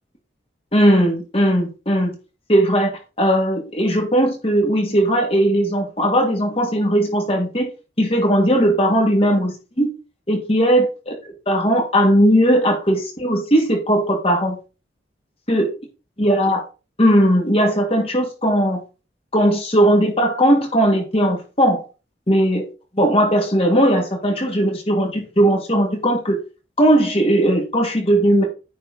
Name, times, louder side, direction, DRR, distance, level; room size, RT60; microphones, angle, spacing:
voice 1, 0.7-2.1 2.5-7.7 8.0-9.9 10.3-11.1 11.5-14.6 15.5-15.7 16.2-16.6 17.0-18.8 19.3-21.8 22.3-22.6 23.0-26.4 26.8-28.4, equal, 30° left, 1 dB, 2.5 m, -18 dB
9.4 x 4.5 x 4.2 m, 0.31 s
head